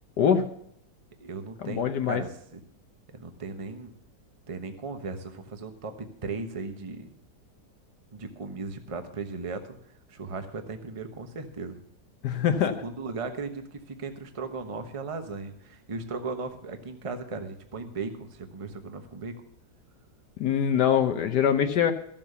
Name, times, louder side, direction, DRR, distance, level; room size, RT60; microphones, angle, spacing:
voice 1, 0.2-0.5 1.6-2.2 12.2-12.7 20.4-21.9, left 8 dB, 70° left, 7 dB, 1.3 m, -23 dB
voice 2, 1.2-2.6 3.1-3.9 4.5-7.1 8.1-9.8 10.1-11.8 12.7-19.3, right 4 dB, 25° right, 7 dB, 0.9 m, -37 dB
14.0 x 7.3 x 6.7 m, 0.72 s
omnidirectional pair, 2.0 m